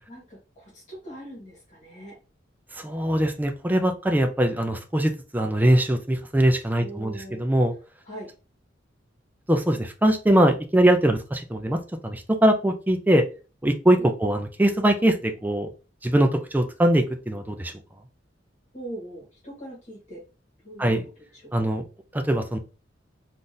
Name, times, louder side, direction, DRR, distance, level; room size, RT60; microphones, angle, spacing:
voice 1, 0.1-2.1 6.8-7.5 8.0-8.3 14.0-14.1 18.7-20.2 20.6-21.0 21.3-21.7, right 1 dB, 40° left, -3 dB, 1.5 m, -41 dB
voice 2, 2.8-7.7 9.5-13.2 13.6-15.7 16.0-17.7 20.8-21.0 21.5-21.8 22.1-22.6, right 1 dB, 10° right, 6 dB, 0.4 m, -22 dB
3.6 x 2.5 x 2.6 m, 0.34 s
head